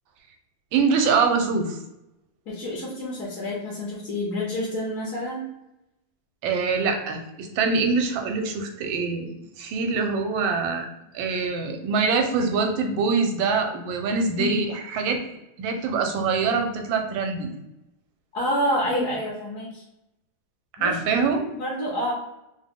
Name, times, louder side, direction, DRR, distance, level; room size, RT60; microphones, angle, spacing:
voice 1, 0.7-1.8 6.4-9.3 9.6-10.9 11.1-14.7 14.9-17.5 20.8-21.4, right 4 dB, 80° right, 4 dB, 1.3 m, -24 dB
voice 2, 2.5-5.5 14.4-14.5 18.3-19.8 20.8-20.9 21.3-22.1, equal, 55° left, -5 dB, 1.0 m, -28 dB
3.6 x 2.1 x 3.5 m, 0.89 s
omnidirectional pair, 2.1 m